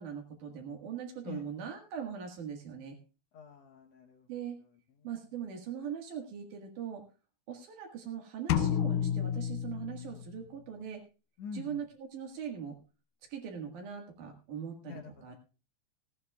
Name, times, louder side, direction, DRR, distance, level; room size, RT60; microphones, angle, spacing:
voice 1, 0.0-3.0 4.3-4.6 5.0-7.0 7.5-11.0 11.5-12.8 13.3-15.4, right 8 dB, 85° right, 2 dB, 3.2 m, -41 dB
voice 2, 3.3-4.3 11.4-11.8 14.8-15.3, left 5 dB, 65° left, 2 dB, 2.1 m, -45 dB
sound 1, 8.5-10.5, left 9 dB, 90° left, 2.3 m, -30 dB
17.5 x 15.0 x 2.3 m, 0.33 s
omnidirectional pair, 3.5 m